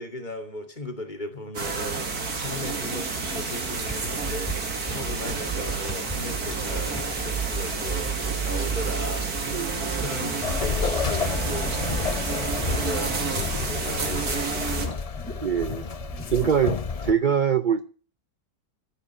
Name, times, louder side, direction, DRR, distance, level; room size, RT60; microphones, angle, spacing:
voice 1, 0.0-4.5 4.9-11.8 12.3-15.0, left 1 dB, 30° left, 2.3 m, -37 dB
sound 1, 1.5-14.9, right 4 dB, 70° right, 2.7 m, -30 dB
sound 2, 3.8-17.0, right 6 dB, 5° left, 2.6 m, -35 dB
sound 3, 10.4-17.1, left 5 dB, 50° left, 0.4 m, -30 dB
voice 2, 15.4-15.8 16.3-17.9, right 7 dB, 50° right, 0.6 m, -23 dB
14.0 x 7.3 x 8.7 m
omnidirectional pair, 1.7 m